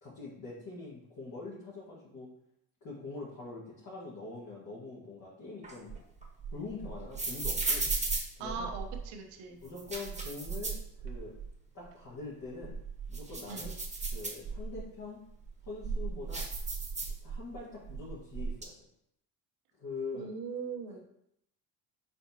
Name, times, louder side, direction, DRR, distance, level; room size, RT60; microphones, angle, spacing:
voice 1, 0.0-2.3 2.8-5.9 6.5-7.9 8.4-8.7 9.6-10.8 11.0-11.3 11.7-12.8 13.1-13.7 14.1-15.2 15.6-16.5 17.2-18.7 19.8-20.3 20.9-21.0, left 3 dB, 45° left, -7 dB, 1.7 m, -43 dB
sound 1, 5.6-9.1 9.7-11.5 11.8-11.9 12.4-14.8 15.4-17.6 17.8-18.6, right 4 dB, 15° right, 1.2 m, -36 dB
voice 2, 8.4-9.6 13.5-13.7 20.1-21.0, right 5 dB, 70° right, 3 dB, 0.9 m, -40 dB
4.4 x 4.2 x 2.8 m, 0.77 s
hypercardioid pair, 60°, 44 cm